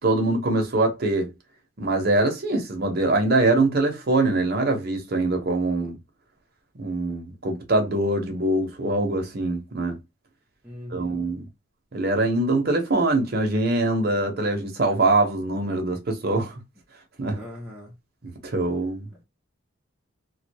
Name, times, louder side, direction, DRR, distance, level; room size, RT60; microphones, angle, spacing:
voice 1, 0.0-1.3 1.8-6.0 6.8-10.0 10.9-11.5 11.9-16.5 17.2-17.4 18.2-19.1, right 2 dB, 50° right, 0.8 m, -23 dB
voice 2, 10.6-11.2 17.3-17.9 19.1-19.2, left 1 dB, 5° right, 0.6 m, -40 dB
2.3 x 2.2 x 2.7 m
head